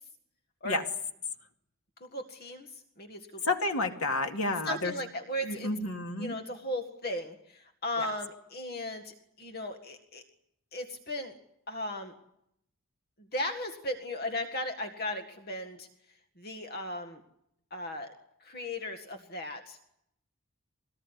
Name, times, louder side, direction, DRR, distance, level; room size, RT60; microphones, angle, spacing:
voice 1, 2.0-3.4 4.7-5.7 6.2-10.2 10.7-11.3 11.7-12.1 13.3-15.9 16.4-17.2 17.7-18.1 18.4-19.8, left 1 dB, 45° left, 5 dB, 1.9 m, -36 dB
voice 2, 3.4-4.9 5.4-6.4 8.0-8.1, left 2 dB, 80° left, 4 dB, 2.5 m, -30 dB
24.0 x 19.0 x 10.0 m, 0.76 s
head